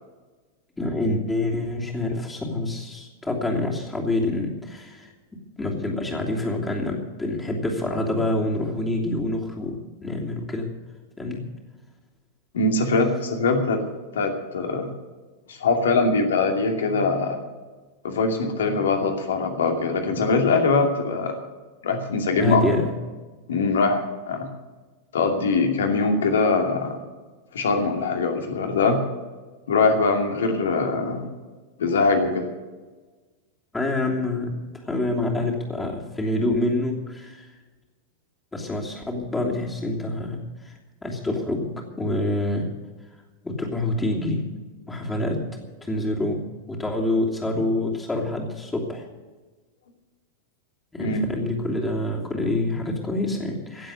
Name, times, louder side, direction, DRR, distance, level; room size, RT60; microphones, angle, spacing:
voice 1, 0.8-5.1 5.6-10.7 11.2-11.4 22.4-22.9 33.7-34.5 34.8-37.5 38.5-41.7 42.0-42.7 43.4-44.4 44.9-45.4 45.8-49.0 50.9-53.9, left 2 dB, 10° left, -1 dB, 2.9 m, -26 dB
voice 2, 12.5-13.8 14.1-14.9 15.5-17.4 18.0-21.3 21.8-22.6 23.5-24.5 25.1-27.0 27.5-29.0 29.7-31.3 31.8-32.5 51.0-51.3, left 3 dB, 65° left, 4 dB, 2.5 m, -22 dB
17.0 x 7.7 x 9.5 m, 1.3 s
figure-of-eight pair, 90°, 0 cm